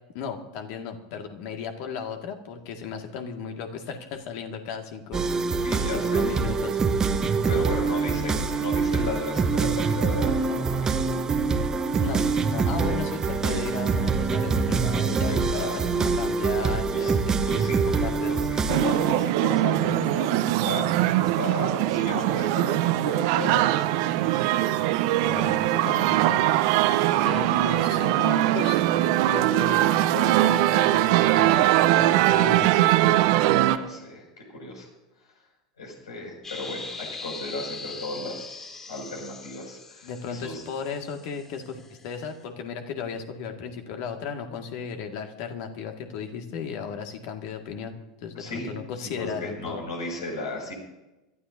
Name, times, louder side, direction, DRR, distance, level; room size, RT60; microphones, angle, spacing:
voice 1, 0.1-5.3 5.9-6.8 7.4-7.6 12.0-17.4 18.0-18.3 25.2-26.6 27.2-28.8 29.3-33.0 40.0-47.9 48.2-49.8, left 6 dB, 55° left, 4 dB, 2.0 m, -35 dB
sound 1, 5.1-19.1, right 5 dB, 25° right, 1.1 m, -25 dB
voice 2, 5.6-6.3 7.3-11.0 15.3-15.8 16.9-17.1 17.4-24.7 25.2-25.5 33.5-34.3 34.5-34.9 35.8-40.6 48.4-50.7, left 2 dB, 80° left, -1 dB, 6.4 m, -35 dB
sound 2, 18.7-33.8, right 14 dB, 60° right, 0.8 m, -21 dB
sound 3, 36.4-42.3, left 4 dB, 25° left, 3.7 m, -41 dB
26.5 x 13.0 x 2.8 m, 1.0 s
hypercardioid pair, 85°, 3 cm